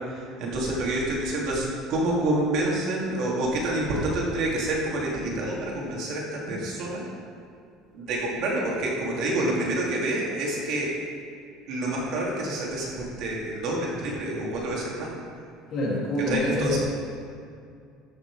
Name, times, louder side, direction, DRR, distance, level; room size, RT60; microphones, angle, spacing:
voice 1, 0.1-7.0 7.9-10.9 11.7-15.1 16.3-16.8, right 1 dB, 50° right, -3 dB, 2.6 m, -28 dB
voice 2, 15.7-16.8, left 1 dB, 40° left, -3 dB, 2.3 m, -26 dB
14.0 x 6.4 x 4.9 m, 2.3 s
cardioid pair, 165°, 0 cm